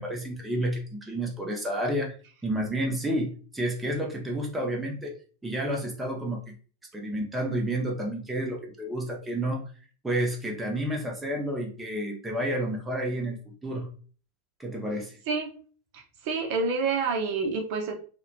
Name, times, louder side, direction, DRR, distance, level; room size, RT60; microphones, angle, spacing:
voice 1, 0.0-2.1 2.4-5.1 5.4-6.4 6.9-9.6 10.0-13.4 13.6-13.9 14.6-15.2, right 1 dB, 10° right, 0 dB, 0.7 m, -30 dB
voice 2, 15.9-18.0, right 4 dB, 45° right, 2 dB, 0.7 m, -28 dB
2.8 x 2.1 x 2.6 m, 0.40 s
figure-of-eight pair, 90°, 0 cm